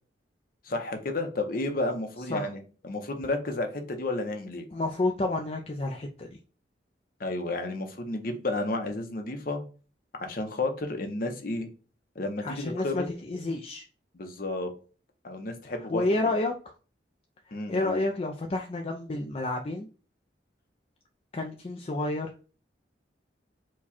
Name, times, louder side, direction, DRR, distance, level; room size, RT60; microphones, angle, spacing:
voice 1, 0.7-4.6 7.2-9.6 10.2-11.7 12.2-13.1 14.1-14.7 15.2-16.0 17.5-18.0, left 2 dB, 50° left, 5 dB, 0.8 m, -32 dB
voice 2, 4.7-6.3 12.4-13.8 15.9-16.7 17.5-19.9 21.3-22.3, left 2 dB, 35° left, 2 dB, 0.4 m, -30 dB
4.7 x 2.3 x 4.2 m, 0.37 s
head